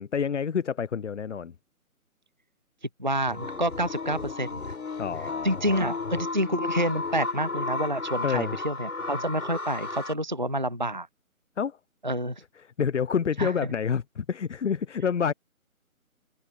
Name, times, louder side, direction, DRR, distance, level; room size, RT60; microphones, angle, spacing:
voice 1, 0.0-1.5 5.0-5.9 8.2-8.5 11.6-11.8 12.6-15.3, left 7 dB, 55° left, 0.7 m, -28 dB
voice 2, 3.0-4.7 5.4-11.1 12.0-12.4 13.4-13.5, right 1 dB, 35° right, 0.4 m, -28 dB
sound 1, 3.3-10.1, left 3 dB, 80° left, 4.5 m, -33 dB
figure-of-eight pair, 160°, 43 cm